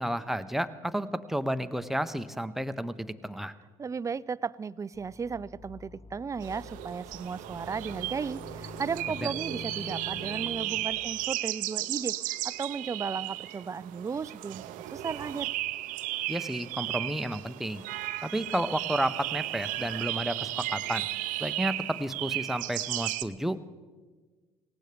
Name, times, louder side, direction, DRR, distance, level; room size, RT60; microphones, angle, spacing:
voice 1, 0.0-3.5 9.2-9.3 16.3-17.9 18.2-21.1 21.4-23.8, equal, ahead, 10 dB, 0.7 m, -32 dB
voice 2, 3.8-14.6 14.9-15.5, right 5 dB, 20° right, 19 dB, 0.3 m, -35 dB
sound 1, 4.9-11.2, left 5 dB, 30° left, 1.2 m, -46 dB
sound 2, 6.4-23.2, right 16 dB, 75° right, 0.5 m, -35 dB
18.0 x 17.0 x 3.3 m, 1.4 s
supercardioid pair, 70°, 14 cm